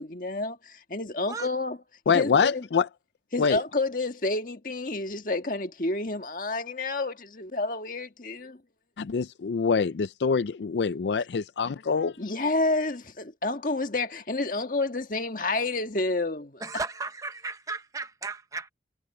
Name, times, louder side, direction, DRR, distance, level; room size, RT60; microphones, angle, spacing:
voice 1, 0.0-1.8 2.1-2.7 3.3-8.6 12.2-16.6, left 2 dB, 50° left, 1.6 m, -29 dB
voice 2, 2.1-2.8 3.4-3.6 9.0-12.1, left 5 dB, 75° left, 0.4 m, -25 dB
voice 3, 16.6-18.7, right 3 dB, 20° right, 0.8 m, -35 dB
head